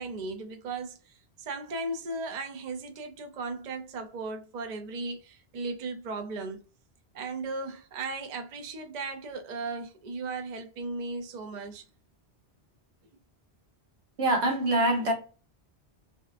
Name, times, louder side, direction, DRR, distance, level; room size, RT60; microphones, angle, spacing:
voice 1, 0.0-6.6 7.1-11.8, right 3 dB, 50° right, 0.5 m, -36 dB
voice 2, 14.2-15.1, right 1 dB, 75° right, 1.2 m, -24 dB
3.1 x 2.8 x 2.4 m
omnidirectional pair, 1.1 m